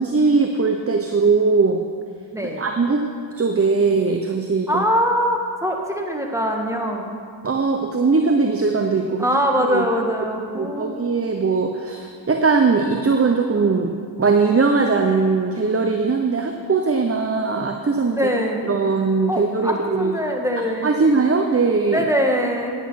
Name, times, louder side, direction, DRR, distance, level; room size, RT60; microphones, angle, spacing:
voice 1, 0.0-1.8 2.6-3.0 3.4-4.8 7.4-9.2 9.7-9.8 10.6-18.2 18.6-20.1 20.8-22.0, right 4 dB, 30° right, 4 dB, 0.9 m, -20 dB
voice 2, 2.3-2.6 4.7-7.1 9.2-11.0 18.1-18.7 19.3-20.9 21.9-22.7, equal, 5° right, 1 dB, 1.8 m, -22 dB
9.8 x 8.4 x 5.8 m, 2.1 s
cardioid pair, 50°, 48 cm